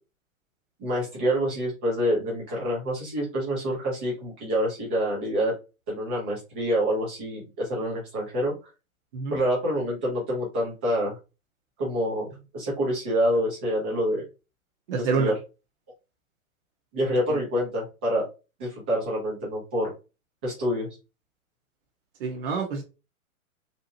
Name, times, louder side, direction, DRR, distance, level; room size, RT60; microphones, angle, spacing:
voice 1, 0.8-5.5 5.9-8.5 9.3-11.2 11.8-12.3 12.5-14.2 14.9-15.3 16.9-18.3 18.6-19.9 20.4-20.9, equal, 10° right, 0.3 m, -27 dB
voice 2, 14.9-15.3 17.3-17.4 22.2-22.8, right 5 dB, 40° right, 0.7 m, -27 dB
2.7 x 2.0 x 2.8 m
figure-of-eight pair, 115°, 42 cm